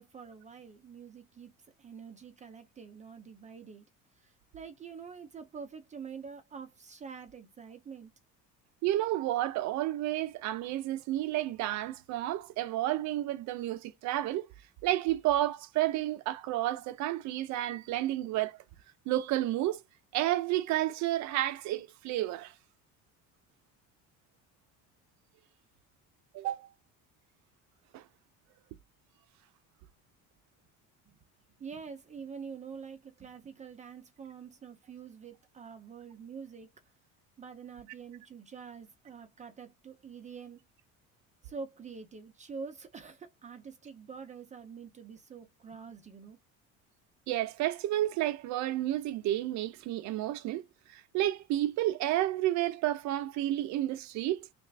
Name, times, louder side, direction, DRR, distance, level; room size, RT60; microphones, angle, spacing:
voice 1, 0.0-1.5 1.8-3.8 4.2-8.1 31.6-36.7 37.4-40.6 41.4-46.4, right 6 dB, 20° right, 0.6 m, -46 dB
voice 2, 8.8-14.5 14.8-18.6 19.1-19.8 20.1-22.5 26.3-26.7 27.9-28.0 47.3-50.6 50.9-54.5, right 14 dB, 60° right, 0.6 m, -31 dB
3.3 x 2.5 x 3.3 m
cardioid pair, 145°, 32 cm